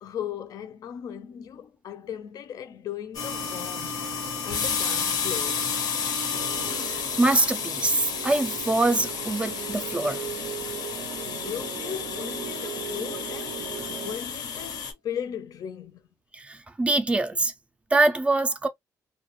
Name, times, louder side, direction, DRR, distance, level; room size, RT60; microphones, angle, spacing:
voice 1, 0.0-4.1 4.4-5.7 11.2-16.0, left 9 dB, 65° left, 0.5 m, -37 dB
sound 1, 3.1-14.9, left 6 dB, 90° left, 0.9 m, -31 dB
sound 2, 6.3-14.2, right 9 dB, 90° right, 0.4 m, -39 dB
voice 2, 6.9-10.2 16.3-17.5 17.9-18.7, right 2 dB, 15° right, 0.3 m, -24 dB
2.3 x 2.2 x 2.9 m
cardioid pair, 145°, 7 cm